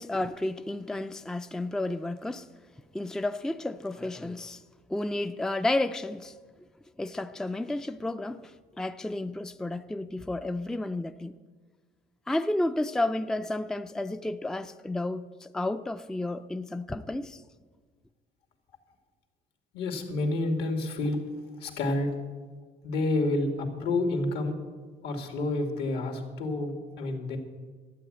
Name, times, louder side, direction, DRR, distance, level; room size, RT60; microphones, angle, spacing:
voice 1, 0.0-2.5 2.9-4.6 4.9-6.3 7.0-11.4 12.3-17.4, left 2 dB, 5° left, 0.4 m, -31 dB
voice 2, 19.7-21.2 21.6-22.1 22.8-24.5 25.0-27.4, left 2 dB, 80° left, 2.4 m, -29 dB
12.5 x 8.8 x 8.6 m
cardioid pair, 110°, 17 cm